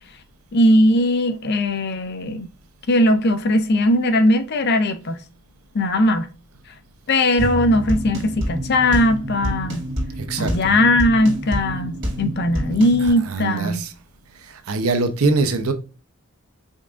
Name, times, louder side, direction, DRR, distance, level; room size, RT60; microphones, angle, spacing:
voice 1, 0.5-2.5 2.9-5.2 5.7-6.3 7.1-9.9 10.4-13.9, left 1 dB, 50° left, 0.5 m, -19 dB
sound 1, 7.4-13.1, equal, 55° right, 2.4 m, -27 dB
voice 2, 10.3-10.8 12.7-13.9 14.5-15.7, right 3 dB, 75° right, 0.7 m, -23 dB
5.2 x 3.5 x 2.4 m
head